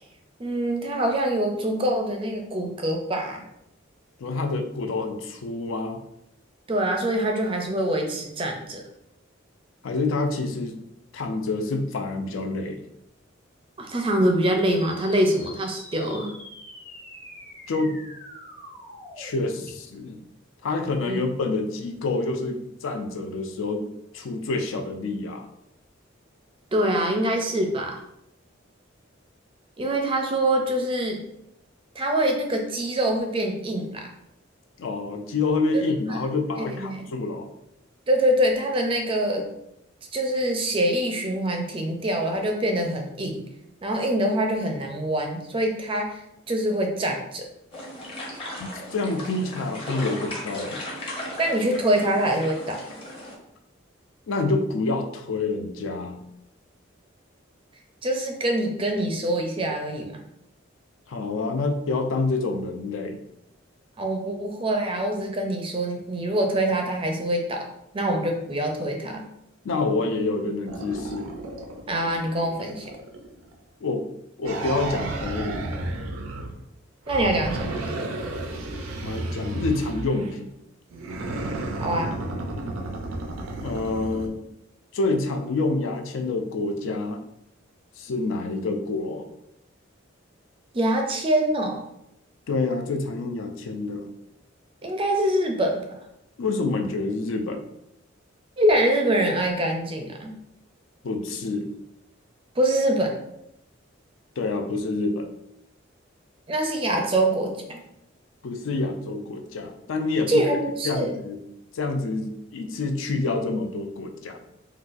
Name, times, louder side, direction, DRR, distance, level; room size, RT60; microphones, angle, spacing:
voice 1, 0.4-3.4 6.7-8.8 13.8-16.3 21.1-21.2 26.7-28.0 29.8-31.2 32.0-34.1 36.1-36.2 36.6-37.0 38.1-39.4 40.1-43.4 43.8-46.2 46.5-47.4 51.4-52.8 58.0-60.2 64.0-67.7 67.9-69.2 71.9-72.9 77.1-77.7 81.8-82.2 90.7-91.8 94.8-95.8 98.6-100.3 102.6-103.2 106.5-107.8 110.3-111.1, right 1 dB, 25° right, 3 dB, 0.4 m, -24 dB
voice 2, 4.2-6.0 9.8-10.8 11.1-12.8 17.7-18.0 19.2-20.2 20.6-23.8 24.1-25.5 34.8-37.5 48.6-50.8 54.3-56.2 61.1-63.2 69.6-71.3 73.8-74.1 74.4-75.8 79.0-80.5 83.6-84.4 84.9-87.2 88.0-89.3 92.5-94.1 96.4-97.6 101.0-101.7 104.4-105.3 108.4-110.5 110.8-111.4 111.7-114.4, left 3 dB, 75° left, 5 dB, 0.4 m, -27 dB
sound 1, 14.7-19.7, left 1 dB, 60° left, 1.2 m, -44 dB
sound 2, 47.7-53.3, left 1 dB, 25° left, 0.7 m, -36 dB
sound 3, 70.7-73.5 74.4-76.6 77.1-80.4 80.9-84.3, right 2 dB, 90° right, 0.5 m, -33 dB
3.9 x 2.3 x 2.5 m, 0.81 s
head